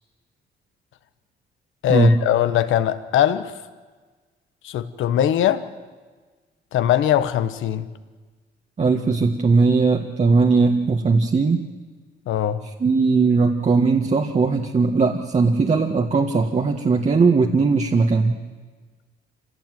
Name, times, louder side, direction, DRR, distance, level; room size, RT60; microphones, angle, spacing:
voice 1, 1.8-3.6 4.6-5.7 6.7-7.9 12.3-12.6, left 11 dB, 80° left, 1.3 m, -21 dB
voice 2, 8.8-11.6 12.8-18.4, right 4 dB, 35° right, 1.6 m, -19 dB
26.0 x 17.5 x 9.4 m
cardioid pair, 90°, 20 cm